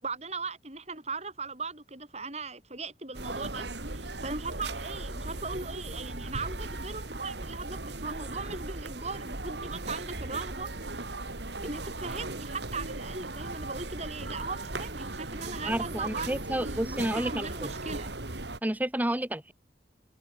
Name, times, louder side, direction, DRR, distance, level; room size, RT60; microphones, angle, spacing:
voice 1, 0.0-11.0 11.6-18.1, right 3 dB, 40° right, 6.7 m, -39 dB
sound 1, 3.1-18.6, right 2 dB, 75° right, 3.1 m, -37 dB
voice 2, 15.6-17.5 18.6-19.5, right 1 dB, 10° right, 1.2 m, -30 dB
head